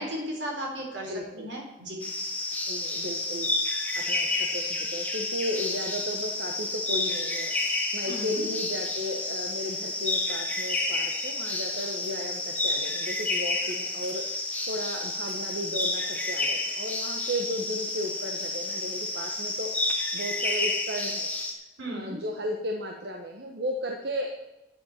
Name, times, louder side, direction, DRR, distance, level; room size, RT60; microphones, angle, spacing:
voice 1, 0.0-2.0 8.1-8.4 21.8-22.2, equal, 80° right, -1 dB, 4.2 m, -35 dB
voice 2, 1.1-1.5 2.7-3.5 3.9-21.3 21.8-24.3, equal, 60° right, 2 dB, 1.2 m, -35 dB
sound 1, 2.0-21.5, left 2 dB, 10° left, 1.5 m, -30 dB
10.0 x 8.0 x 7.3 m, 1.0 s
head